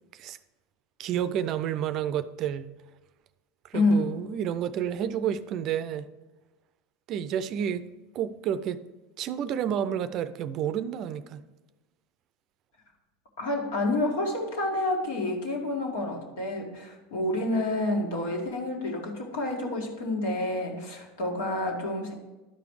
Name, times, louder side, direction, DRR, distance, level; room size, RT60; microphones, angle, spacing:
voice 1, 1.0-2.7 3.6-6.1 7.1-7.8 8.1-8.8 9.2-11.4, right 9 dB, 45° right, 0.5 m, -30 dB
voice 2, 3.7-4.0 13.4-22.1, left 2 dB, 70° left, 2.1 m, -28 dB
11.5 x 5.1 x 4.8 m
hypercardioid pair, 85°, 0 cm